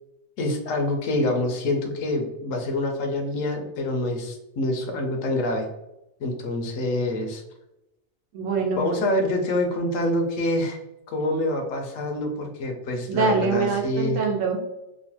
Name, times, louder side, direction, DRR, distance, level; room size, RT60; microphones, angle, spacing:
voice 1, 0.4-5.7 6.2-7.4 8.8-10.8 11.1-14.2, left 1 dB, 75° left, 3 dB, 0.9 m, -26 dB
voice 2, 8.3-8.9 13.1-14.6, right 4 dB, 75° right, 1 dB, 1.0 m, -24 dB
3.0 x 2.1 x 2.8 m, 0.89 s
omnidirectional pair, 1.4 m